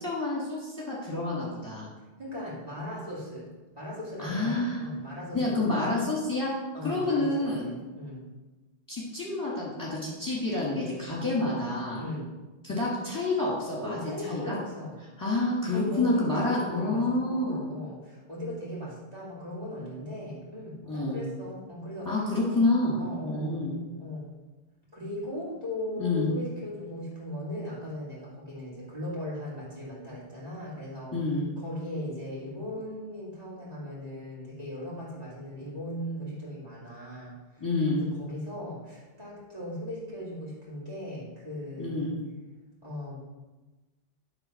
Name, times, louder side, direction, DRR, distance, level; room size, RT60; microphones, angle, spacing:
voice 1, 0.0-1.9 4.2-4.8 5.3-6.5 6.8-7.7 8.9-12.0 12.6-14.0 14.2-14.6 15.2-17.7 20.8-21.2 22.1-23.8 26.0-26.3 31.1-31.5 37.6-38.0 41.8-42.2, left 2 dB, 20° left, -6 dB, 2.0 m, -28 dB
voice 2, 2.2-3.5 3.7-5.9 6.7-8.2 11.9-12.3 13.8-14.9 15.7-22.3 23.0-23.6 24.0-24.3 24.9-31.1 31.6-37.3 38.0-42.1 42.8-43.2, left 1 dB, 40° right, -8 dB, 3.1 m, -38 dB
11.0 x 3.7 x 5.8 m, 1.2 s
omnidirectional pair, 1.1 m